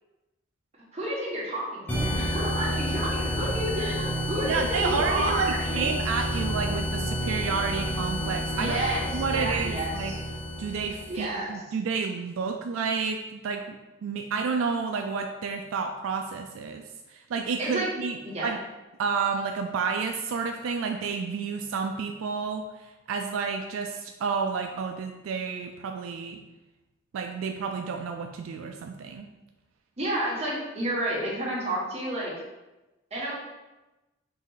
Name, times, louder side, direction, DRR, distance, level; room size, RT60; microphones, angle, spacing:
voice 1, 0.9-5.8 8.5-10.1 11.1-11.5 17.6-17.9 18.2-18.5 30.0-32.3 33.1-33.3, right 1 dB, 30° right, -6 dB, 1.3 m, -30 dB
sound 1, 1.9-11.3, equal, 10° left, 0.8 m, -30 dB
voice 2, 4.5-8.8 9.1-10.1 10.6-13.8 14.0-16.8 17.1-18.6 19.0-26.4 27.1-29.3, right 5 dB, 80° right, 4 dB, 0.3 m, -30 dB
4.0 x 3.0 x 3.9 m, 1.1 s
head